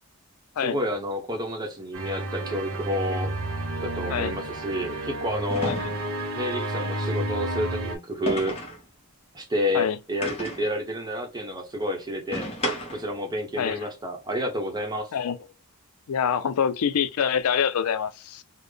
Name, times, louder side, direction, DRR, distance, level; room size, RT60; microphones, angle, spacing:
voice 1, 0.6-3.3 3.8-5.7 6.4-8.6 9.3-12.5 12.9-15.1, equal, 20° right, 0.8 m, -29 dB
sound 1, 1.9-8.0, right 1 dB, 75° right, 0.9 m, -31 dB
sound 2, 3.3-3.4 5.5-6.2 8.3-8.8 10.2-10.7 12.3-13.1, equal, 25° left, 0.9 m, -32 dB
voice 2, 13.6-13.9 15.1-15.4 16.1-18.4, left 7 dB, 80° left, 0.4 m, -25 dB
3.8 x 2.0 x 3.3 m
head